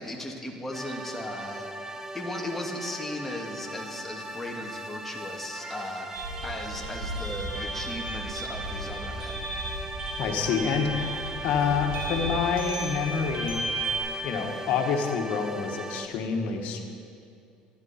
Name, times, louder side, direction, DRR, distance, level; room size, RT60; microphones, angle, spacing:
voice 1, 0.0-9.5, left 1 dB, 5° left, -1 dB, 2.2 m, -37 dB
sound 1, 0.7-16.1, right 1 dB, 20° right, 0.9 m, -39 dB
sound 2, 6.1-14.0, right 1 dB, 70° right, 2.6 m, -34 dB
voice 2, 10.2-13.7 14.2-16.8, left 6 dB, 65° left, 3 dB, 1.7 m, -27 dB
15.5 x 12.0 x 4.4 m, 2.4 s
supercardioid pair, 100°, 3 cm